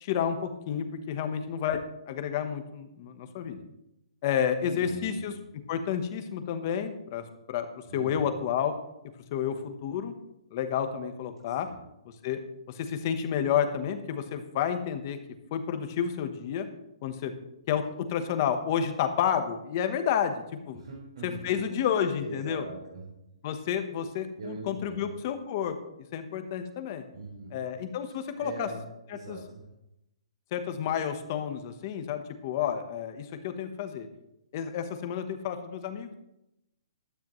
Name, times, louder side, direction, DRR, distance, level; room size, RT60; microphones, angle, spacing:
voice 1, 0.0-1.8 2.1-3.6 4.2-5.3 5.7-8.7 9.3-10.1 10.5-11.7 12.2-12.4 12.7-15.2 15.5-16.7 17.0-17.3 17.7-20.8 21.2-22.7 23.4-25.7 26.1-27.0 27.5-28.7 29.1-29.4 30.5-34.1 34.5-36.1, left 8 dB, 25° left, 8 dB, 1.0 m, -30 dB
voice 2, 4.8-5.2 7.9-8.3 11.6-11.8 20.7-21.7 22.2-23.0 24.4-25.1 27.1-27.5 28.1-28.8 29.1-29.6, right 2 dB, 55° right, -3 dB, 4.6 m, -41 dB
15.0 x 12.5 x 3.1 m, 0.86 s
hypercardioid pair, 175°, 4 cm